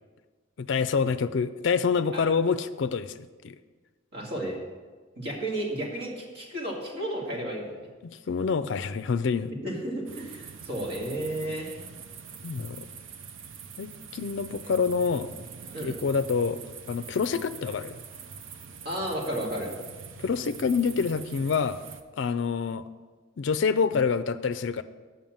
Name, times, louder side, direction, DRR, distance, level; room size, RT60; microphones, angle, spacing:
voice 1, 0.6-3.5 8.0-9.5 12.4-12.9 13.8-15.3 15.8-16.6 16.9-18.0 20.2-21.8 22.2-22.8 23.4-24.8, left 5 dB, 65° left, 13 dB, 0.4 m, -27 dB
voice 2, 4.1-4.6 5.2-7.9 9.6-11.8 15.7-16.0 18.8-19.7, right 1 dB, 55° right, -2 dB, 2.2 m, -33 dB
sound 1, 10.1-22.0, right 6 dB, 80° right, 0.6 m, -44 dB
7.1 x 5.7 x 7.5 m, 1.4 s
head